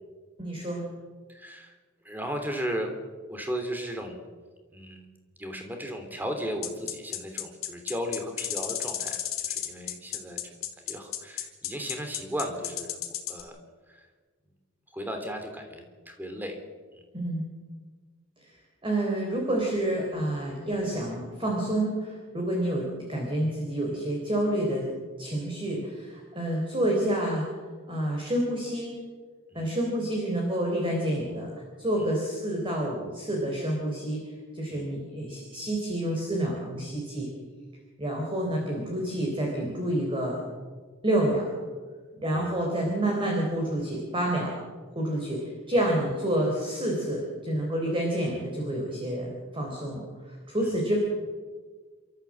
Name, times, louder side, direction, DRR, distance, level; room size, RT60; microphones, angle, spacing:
voice 1, 0.4-0.9 17.1-17.4 18.4-18.5 18.8-24.9 25.2-27.5 27.9-28.9 29.5-31.5 31.8-37.3 38.0-40.4 41.0-41.5 42.2-44.5 45.0-51.0, right 1 dB, 25° right, 0 dB, 3.9 m, -28 dB
voice 2, 1.3-1.7 2.0-2.9 3.3-4.2 4.7-5.1 5.4-10.5 10.9-13.0 13.3-13.6 13.9-14.1 14.9-16.6 16.9-17.0 29.5-29.7 32.0-32.1 34.7-34.9 42.3-42.6 50.6-50.8, equal, 10° right, 5 dB, 3.1 m, -35 dB
sound 1, 6.6-13.4, left 12 dB, 85° left, 2.9 m, -32 dB
28.0 x 14.0 x 7.6 m, 1.5 s
head